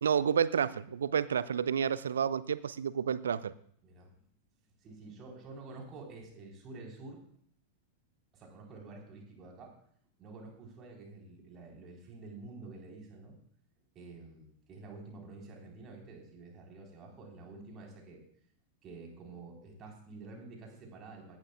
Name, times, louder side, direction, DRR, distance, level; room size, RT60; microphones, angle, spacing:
voice 1, 0.0-3.5, right 7 dB, 65° right, 18 dB, 0.6 m, -30 dB
voice 2, 4.8-7.2 8.3-9.8 10.2-13.4 13.9-18.2 18.8-21.4, right 3 dB, 30° right, 1 dB, 4.0 m, -49 dB
17.5 x 12.0 x 2.3 m, 0.63 s
figure-of-eight pair, 90°, 0 cm